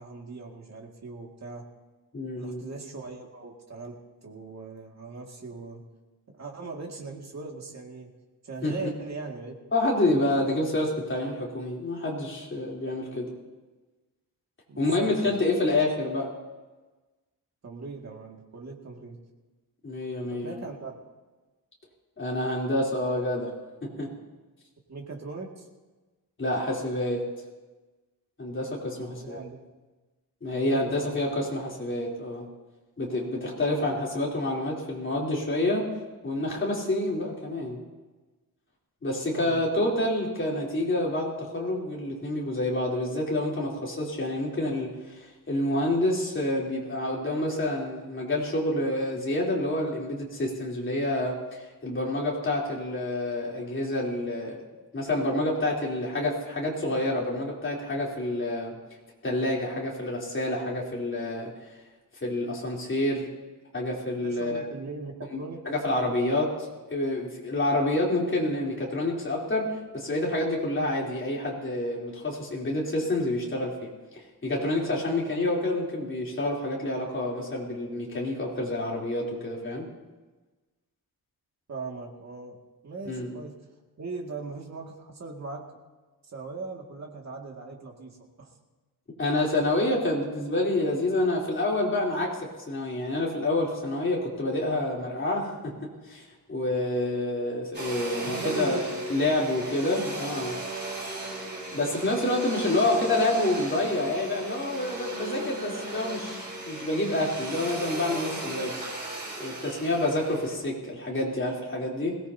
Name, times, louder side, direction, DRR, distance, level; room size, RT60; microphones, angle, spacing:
voice 1, 0.0-1.7 2.4-5.8 6.3-8.1 8.4-9.6 10.1-10.5 14.7-15.3 17.6-19.2 20.3-20.9 24.9-25.7 28.9-29.6 30.4-31.4 33.7-33.8 39.3-39.7 64.2-65.6 81.7-82.6 82.8-83.6 84.0-85.6 86.2-88.5 98.2-98.8, right 3 dB, 45° right, 0 dB, 2.2 m, -39 dB
voice 2, 2.1-2.6 8.6-8.7 9.7-13.3 14.8-16.3 19.8-20.6 22.2-23.5 23.8-24.1 26.4-27.2 28.4-29.4 30.4-32.4 33.0-35.9 36.2-37.8 39.0-54.6 54.9-58.7 59.2-61.5 62.2-63.3 63.7-64.6 65.3-65.4 65.6-66.5 66.9-73.9 74.4-79.8 83.0-83.3 89.2-92.4 92.7-95.7 96.1-98.8 99.1-100.6 101.7-108.8 109.4-112.2, left 1 dB, 30° left, -3 dB, 3.4 m, -28 dB
Domestic sounds home sounds, 97.7-110.6, right 2 dB, 30° right, 3.8 m, -36 dB
21.5 x 18.0 x 2.8 m, 1.2 s
wide cardioid pair, 165°, 37 cm